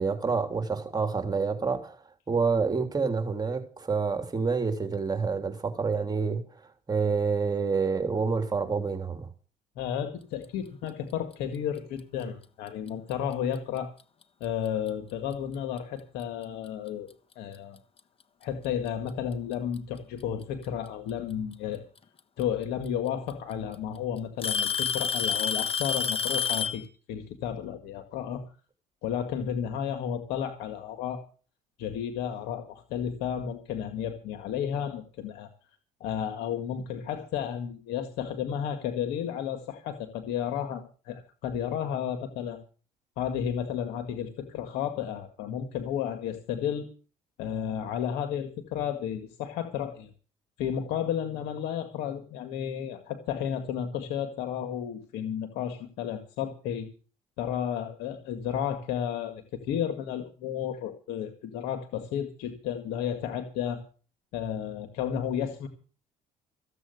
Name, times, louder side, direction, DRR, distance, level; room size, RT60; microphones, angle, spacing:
voice 1, 0.0-2.0 2.3-6.4 6.9-9.3, right 5 dB, 25° right, 3.3 m, -28 dB
voice 2, 9.8-13.9 14.4-17.1 17.4-17.8 18.4-21.8 22.4-28.4 29.0-31.2 31.8-35.5 36.0-42.6 43.2-46.9 47.4-50.1 50.6-56.9 57.4-63.8 64.3-65.7, left 9 dB, 80° left, 1.9 m, -32 dB
Alarm / Tick-tock, 12.9-13.1 14.0-14.1 14.9-15.0 16.7-16.8 18.0-18.1 19.3-19.8 21.5-21.6 22.9-23.0 23.3-23.7 24.4-26.8, left 7 dB, 35° left, 1.3 m, -28 dB
15.5 x 7.9 x 7.9 m
supercardioid pair, 75°, 16 cm